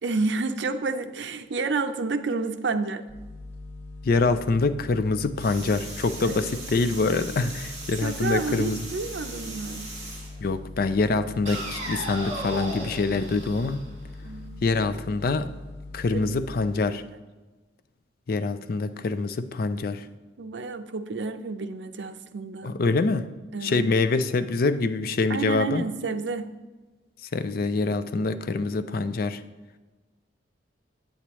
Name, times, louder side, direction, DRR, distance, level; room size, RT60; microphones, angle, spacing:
voice 1, 0.0-3.0 6.2-6.5 8.0-9.9 14.2-14.7 16.1-16.4 20.4-22.7 23.5-23.9 25.3-26.5, right 3 dB, 80° right, 10 dB, 0.5 m, -30 dB
sound 1, 3.1-16.5, left 2 dB, 15° left, 2.1 m, -41 dB
voice 2, 4.0-8.8 10.4-13.8 14.6-15.5 15.9-17.0 18.3-20.0 22.6-23.3 23.6-25.8 27.3-29.4, left 3 dB, 55° left, 12 dB, 0.4 m, -25 dB
sound 2, 5.4-10.3 11.5-14.4, right 1 dB, 40° right, 2.8 m, -37 dB
8.6 x 8.3 x 3.1 m, 1.2 s
head